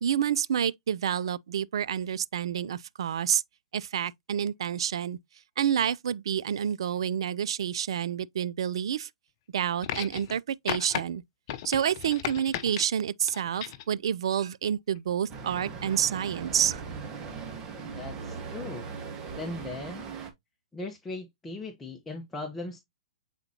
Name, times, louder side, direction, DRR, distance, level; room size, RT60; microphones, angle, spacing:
voice 1, 0.0-3.4 3.7-5.2 5.6-9.1 9.5-11.2 11.6-16.8, right 9 dB, 65° right, 0.4 m, -28 dB
sound 1, 9.8-10.4 10.7-11.0 11.5-12.8 13.3-13.9 15.0-15.1, left 11 dB, 45° left, 0.8 m, -35 dB
Traffic noise roadway noise, 15.3-20.3, right 5 dB, 25° right, 1.5 m, -39 dB
voice 2, 17.9-18.9 19.4-20.1 20.7-22.8, left 2 dB, 10° left, 1.0 m, -38 dB
7.7 x 4.2 x 2.9 m
hypercardioid pair, 125°, 3 cm